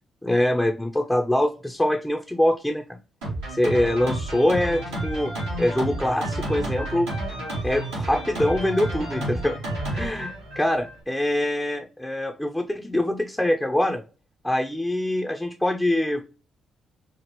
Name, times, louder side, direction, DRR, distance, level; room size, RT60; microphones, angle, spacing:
voice 1, 0.2-3.0 3.5-7.1 7.4-9.6 9.9-14.0 14.4-16.2, left 1 dB, 5° left, 3 dB, 0.7 m, -24 dB
Drum kit, 3.2-11.0, right 1 dB, 85° right, 2.1 m, -31 dB
5.1 x 2.4 x 2.9 m, 0.34 s
hypercardioid pair, 45°, 0 cm